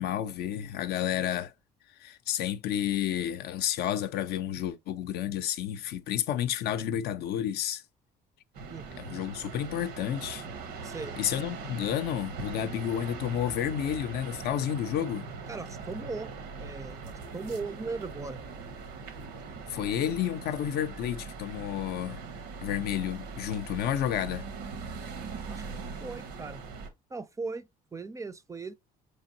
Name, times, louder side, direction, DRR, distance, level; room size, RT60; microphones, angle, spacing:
voice 1, 0.0-1.5 2.0-7.8 9.0-10.5 11.2-15.3 19.7-22.2 22.6-24.5, left 10 dB, 70° left, 0.5 m, -31 dB
sound 1, 8.5-26.9, right 4 dB, 90° right, 0.9 m, -41 dB
voice 2, 8.7-9.2 10.8-11.2 15.5-18.4 25.5-25.6 26.0-26.6 27.1-28.7, right 3 dB, 20° right, 0.4 m, -38 dB
4.5 x 3.3 x 2.7 m
cardioid pair, 110°, 17 cm